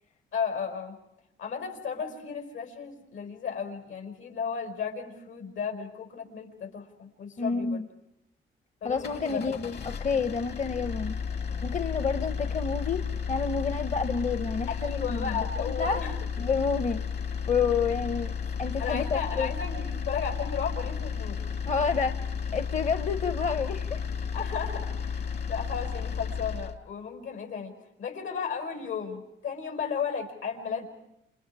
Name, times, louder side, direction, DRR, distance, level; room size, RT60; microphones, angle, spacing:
voice 1, 0.3-1.0 1.4-7.8 8.8-9.5 14.7-16.2 18.8-21.4 24.3-30.8, left 6 dB, 80° left, 4 dB, 5.6 m, -34 dB
voice 2, 7.4-7.8 8.8-11.2 11.6-13.0 13.3-16.0 16.4-17.0 17.5-18.3 18.6-19.5 21.7-22.1 22.5-24.0, left 5 dB, 35° left, 10 dB, 1.0 m, -29 dB
sound 1, 8.9-26.8, left 6 dB, 55° left, 1.9 m, -33 dB
29.5 x 29.0 x 5.0 m, 0.83 s
cardioid pair, 90°, 20 cm